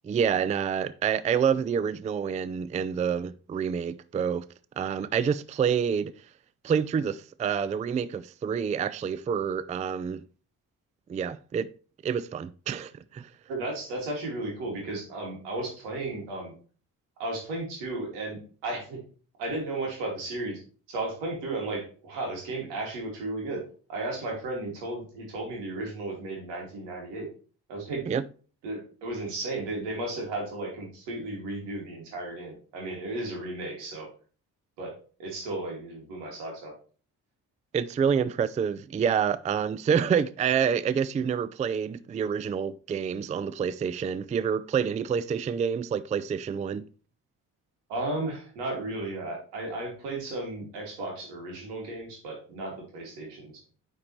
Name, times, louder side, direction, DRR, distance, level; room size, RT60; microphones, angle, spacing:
voice 1, 0.0-4.5 4.8-6.1 6.6-10.2 11.1-11.7 12.0-13.3 28.1-28.2 37.7-46.9, right 7 dB, 20° right, 0.3 m, -27 dB
voice 2, 13.5-16.5 17.2-19.0 19.4-20.6 20.9-23.6 23.9-27.3 27.7-28.0 28.6-34.1 34.8-34.9 35.2-36.7 47.9-53.5, right 2 dB, 85° right, 2.6 m, -34 dB
9.5 x 4.5 x 3.2 m
supercardioid pair, 55°, 40 cm